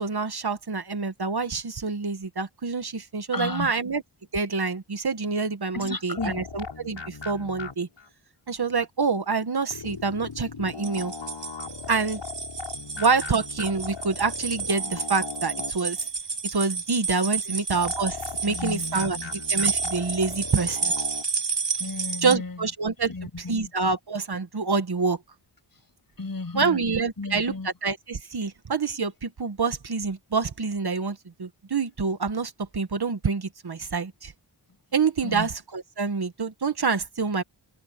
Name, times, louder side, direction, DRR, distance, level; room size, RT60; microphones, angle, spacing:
voice 1, 0.0-4.0 4.3-7.9 8.5-11.1 11.9-12.2 13.0-16.0 16.5-19.2 19.5-20.9 22.2-23.1 23.5-25.2 26.5-34.3 34.9-37.4, right 4 dB, 55° right, 1.8 m, -27 dB
voice 2, 3.3-3.8 5.7-6.5 12.7-12.9 17.4-17.6 18.4-19.3 21.8-22.6 23.1-23.6 26.2-26.8 27.2-27.7 35.2-35.5, left 3 dB, 50° left, 7.9 m, -34 dB
sound 1, 6.2-8.1 9.7-16.1 17.7-21.2, left 5 dB, 80° left, 8.0 m, -38 dB
sound 2, 10.7-22.3, right 4 dB, 70° right, 6.9 m, -31 dB
wide cardioid pair, 80°, 45 cm